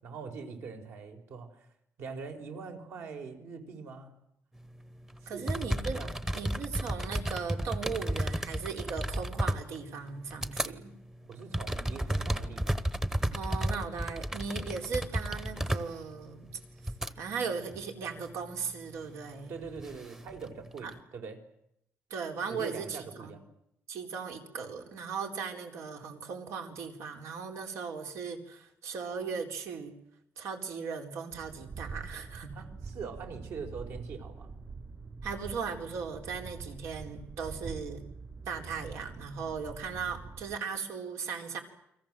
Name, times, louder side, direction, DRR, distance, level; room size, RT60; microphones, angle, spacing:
voice 1, 0.0-1.7 2.0-4.1 5.2-5.6 5.9-6.1 11.2-12.8 19.5-21.4 22.5-23.5 32.5-34.5, right 5 dB, 65° right, 5 dB, 4.8 m, -43 dB
sound 1, 5.1-5.2 5.4-10.7 11.1-17.1 17.7-18.2 19.4-20.9, right 1 dB, 10° right, 1.0 m, -33 dB
voice 2, 5.3-6.0 6.3-10.9 13.3-16.5 17.2-19.5 20.8-20.9 22.1-23.3 23.9-29.9 30.4-32.6 35.2-38.0 38.5-41.6, right 5 dB, 85° right, 4 dB, 4.5 m, -37 dB
sound 2, 31.3-40.6, right 4 dB, 35° right, 3.7 m, -45 dB
29.5 x 23.0 x 7.7 m, 0.77 s
cardioid pair, 175°, 5 cm